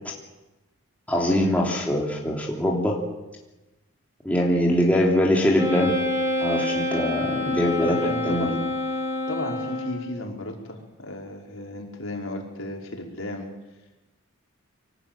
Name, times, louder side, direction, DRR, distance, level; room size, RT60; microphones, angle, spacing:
voice 1, 1.1-3.0 4.2-5.9 6.4-8.0 8.2-8.6, left 1 dB, 5° left, -2 dB, 3.3 m, -22 dB
Wind instrument woodwind instrument, 5.6-10.2, left 1 dB, 15° right, 3.5 m, -27 dB
voice 2, 7.8-8.5 9.3-13.5, left 1 dB, 65° left, 0 dB, 5.1 m, -34 dB
24.5 x 19.5 x 9.1 m, 1.1 s
head